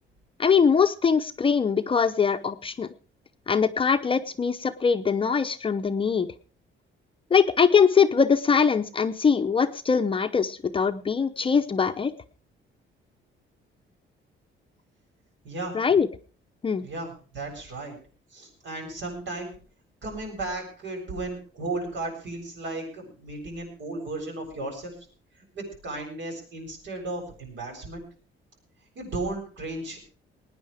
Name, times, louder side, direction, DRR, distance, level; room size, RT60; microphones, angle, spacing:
voice 1, 0.4-2.9 3.5-6.3 7.3-12.1 15.7-16.1 16.6-16.8, left 6 dB, 25° left, 8 dB, 0.7 m, -22 dB
voice 2, 15.4-15.8 16.8-18.0 18.3-19.6 20.0-24.9 25.5-28.0 29.0-30.1, right 2 dB, 65° right, 1 dB, 7.6 m, -35 dB
20.0 x 9.9 x 5.0 m, 0.39 s
cardioid pair, 145°, 20 cm